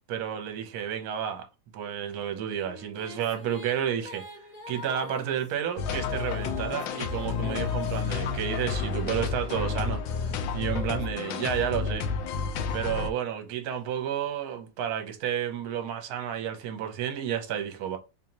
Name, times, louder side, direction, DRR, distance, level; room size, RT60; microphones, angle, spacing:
voice 1, 0.1-1.5 1.7-4.2 4.7-12.1 12.7-18.0, right 9 dB, 65° right, 1.1 m, -31 dB
Female singing, 2.2-9.1 9.8-13.5, left 2 dB, 30° left, 0.8 m, -48 dB
sound 1, 5.8-13.1, left 5 dB, 75° left, 1.2 m, -30 dB
3.8 x 2.8 x 2.9 m
omnidirectional pair, 2.1 m